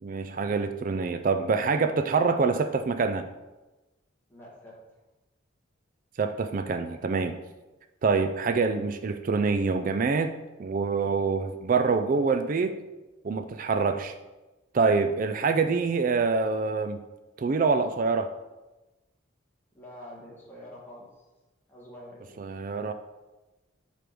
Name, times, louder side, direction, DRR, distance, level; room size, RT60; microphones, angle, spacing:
voice 1, 0.0-3.2 6.2-7.3 8.0-10.3 10.6-12.8 13.2-14.1 14.7-17.0 17.4-18.3 22.4-22.9, right 4 dB, 40° right, 9 dB, 0.3 m, -25 dB
voice 2, 4.3-4.8 19.7-21.1 21.7-22.4, left 1 dB, 10° left, -6 dB, 1.7 m, -46 dB
5.0 x 5.0 x 6.0 m, 1.1 s
head